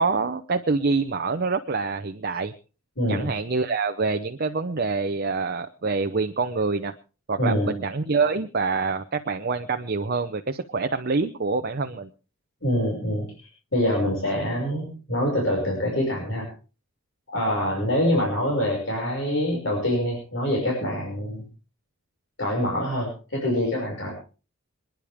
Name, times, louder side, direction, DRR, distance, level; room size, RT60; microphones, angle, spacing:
voice 1, 0.0-2.5 3.1-6.9 7.3-12.1, right 4 dB, 45° right, 6 dB, 0.8 m, -26 dB
voice 2, 3.0-3.3 7.4-7.7 12.6-16.5 17.3-21.4 22.4-24.1, equal, 60° left, -1 dB, 5.9 m, -25 dB
27.0 x 10.5 x 3.5 m, 0.36 s
head